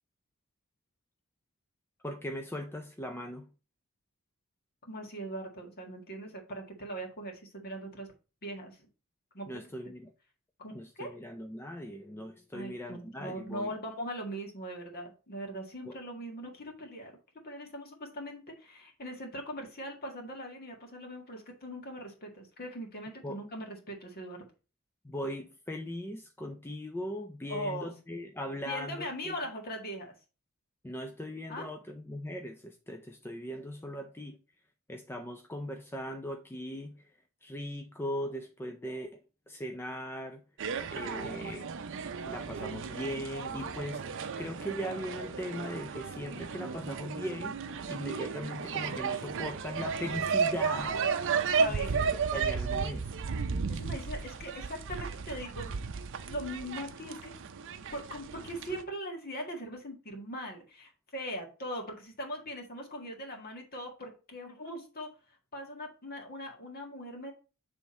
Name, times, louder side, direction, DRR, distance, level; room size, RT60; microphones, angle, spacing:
voice 1, 2.0-3.5 9.5-10.1 10.7-13.7 15.8-16.0 23.2-23.4 25.0-29.4 30.8-34.4 34.9-40.4 40.9-41.7 42.3-51.0 51.7-53.2, equal, 10° left, 0.4 m, -39 dB
voice 2, 4.8-8.1 8.4-8.8 9.3-9.5 10.6-11.1 12.5-17.1 17.4-24.4 27.5-27.9 28.6-30.1 31.5-31.7 51.6-52.0 53.7-55.7 56.3-57.3 57.9-65.1 65.5-67.3, equal, 45° left, 1.7 m, -40 dB
sound 1, 40.6-58.8, right 5 dB, 60° right, 0.6 m, -34 dB
7.2 x 3.4 x 4.3 m
head